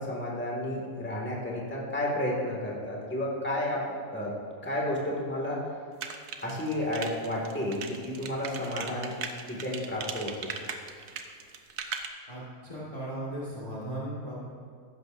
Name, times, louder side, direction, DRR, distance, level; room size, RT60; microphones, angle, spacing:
voice 1, 0.0-3.8 4.1-4.3 4.6-5.6 6.4-9.1 9.5-10.5, left 1 dB, 5° left, -4 dB, 2.0 m, -31 dB
sound 1, 6.0-12.1, right 6 dB, 70° right, 1.2 m, -37 dB
voice 2, 12.3-14.5, right 1 dB, 25° left, -6 dB, 1.8 m, -37 dB
15.0 x 11.5 x 2.6 m, 2.3 s
omnidirectional pair, 1.6 m